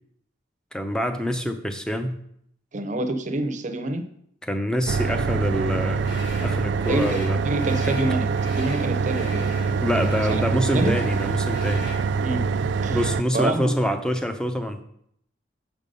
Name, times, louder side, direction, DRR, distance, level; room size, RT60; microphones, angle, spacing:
voice 1, 0.7-2.2 4.4-6.1 6.4-7.4 7.8-7.9 9.8-11.9 12.9-14.8, equal, 5° left, 7 dB, 0.6 m, -26 dB
voice 2, 2.7-4.0 6.9-9.5 9.9-10.4 10.7-10.9 12.2-12.4 12.8-13.0 13.3-13.7, right 2 dB, 40° right, 7 dB, 0.7 m, -27 dB
sound 1, 4.9-13.2, right 5 dB, 60° right, 0.3 m, -25 dB
sound 2, 6.0-12.1, left 2 dB, 55° left, 1.7 m, -42 dB
7.3 x 5.3 x 5.3 m, 0.69 s
head